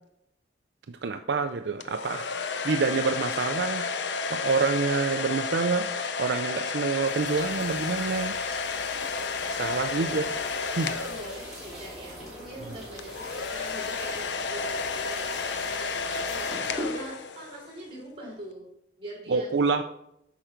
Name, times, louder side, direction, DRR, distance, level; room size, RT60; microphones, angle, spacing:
voice 1, 0.9-3.9 4.3-5.9 6.2-8.3 9.5-10.2 10.8-10.9 19.3-19.8, right 4 dB, 75° right, 8 dB, 0.5 m, -27 dB
sound 1, 1.8-11.9 13.0-17.7, left 5 dB, 90° left, 0.7 m, -32 dB
sound 2, 7.0-16.9, equal, 5° right, 3.3 m, -42 dB
voice 2, 10.0-10.4 10.7-16.5 16.8-18.7 19.0-19.5, right 1 dB, 30° right, -2 dB, 3.5 m, -43 dB
8.9 x 6.1 x 5.1 m, 0.78 s
head